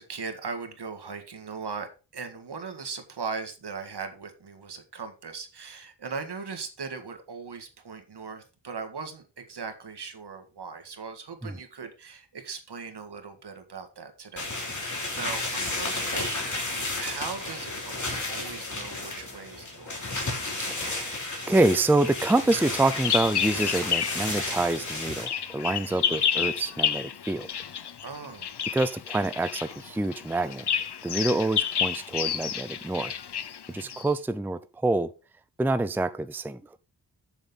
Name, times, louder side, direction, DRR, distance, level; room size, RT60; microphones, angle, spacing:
voice 1, 0.0-20.0 25.9-26.2 28.0-28.6 33.7-34.1, right 5 dB, 70° right, 1.9 m, -39 dB
sound 1, 14.4-25.3, left 2 dB, 45° left, 3.3 m, -33 dB
voice 2, 20.7-21.2 21.5-27.5 28.7-30.6 31.0-33.1 33.7-35.1 35.6-36.8, right 2 dB, 5° right, 0.5 m, -26 dB
Bird vocalization bird call bird song, 22.0-24.3 24.6-34.1, left 8 dB, 70° left, 0.9 m, -30 dB
7.2 x 7.0 x 5.6 m
wide cardioid pair, 95°, 42 cm